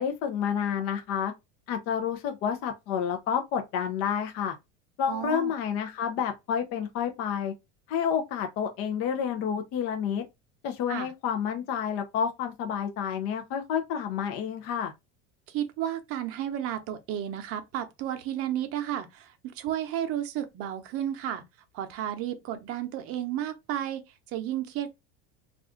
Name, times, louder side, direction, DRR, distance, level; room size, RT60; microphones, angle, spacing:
voice 1, 0.0-1.3 1.7-4.6 5.0-7.5 7.9-10.2 10.6-14.9, left 8 dB, 50° left, 0.5 m, -29 dB
voice 2, 5.1-5.5 10.9-11.1 15.5-21.4 21.7-24.9, right 11 dB, 50° right, 0.7 m, -32 dB
2.4 x 2.3 x 3.6 m
cardioid pair, 145°, 30 cm